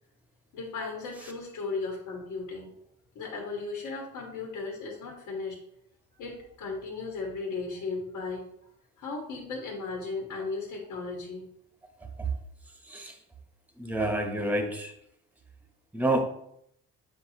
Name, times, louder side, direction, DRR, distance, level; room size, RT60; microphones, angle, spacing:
voice 1, 0.5-2.7 3.2-5.6 6.2-8.5 9.0-11.5, left 3 dB, 80° left, -2 dB, 1.9 m, -36 dB
voice 2, 12.8-13.2 13.8-14.9 15.9-16.3, right 1 dB, 5° right, 4 dB, 1.1 m, -28 dB
8.0 x 4.8 x 3.0 m, 0.74 s
cardioid pair, 90°, 30 cm